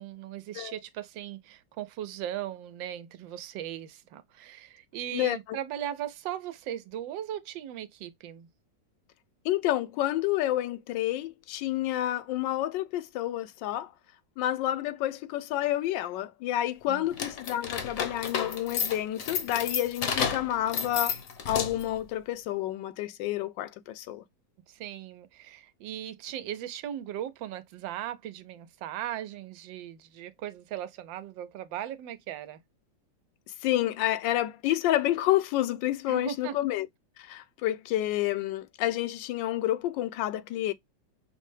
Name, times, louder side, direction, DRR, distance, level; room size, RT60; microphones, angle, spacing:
voice 1, 0.0-8.5 16.9-17.1 24.7-32.6 36.1-36.5, right 11 dB, 85° right, 1.4 m, -38 dB
voice 2, 9.4-13.9 14.4-21.2 21.5-24.2 33.6-36.9 37.2-40.7, left 14 dB, 80° left, 1.2 m, -29 dB
sound 1, 17.1-22.0, left 6 dB, 55° left, 1.0 m, -31 dB
5.6 x 2.1 x 3.1 m
omnidirectional pair, 2.0 m